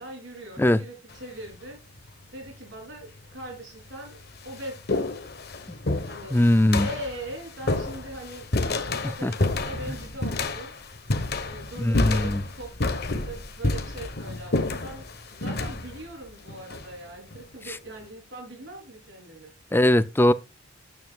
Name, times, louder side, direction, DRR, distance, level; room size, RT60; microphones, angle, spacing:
voice 1, 0.0-1.8 2.3-5.1 6.0-6.4 6.8-8.5 8.8-10.7 11.4-19.5, right 1 dB, 60° right, 3.7 m, -41 dB
sound 1, 1.1-1.5 2.5-2.6 3.4-3.5 3.9-17.4, left 2 dB, 50° left, 1.2 m, -30 dB
voice 2, 6.3-6.9 9.2-9.3 11.8-12.4 17.7-17.8 19.7-20.3, left 1 dB, 10° left, 0.4 m, -20 dB
9.4 x 9.2 x 2.4 m
head